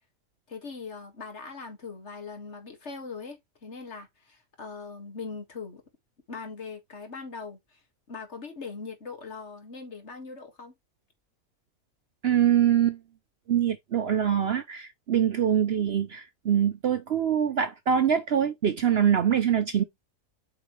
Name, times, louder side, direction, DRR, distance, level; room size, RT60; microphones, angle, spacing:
voice 1, 0.5-5.8 6.3-7.8 8.1-10.7, left 4 dB, 50° left, 2.2 m, -40 dB
voice 2, 12.2-13.0 13.5-19.8, right 9 dB, 55° right, 0.7 m, -24 dB
8.2 x 4.5 x 3.1 m
omnidirectional pair, 1.5 m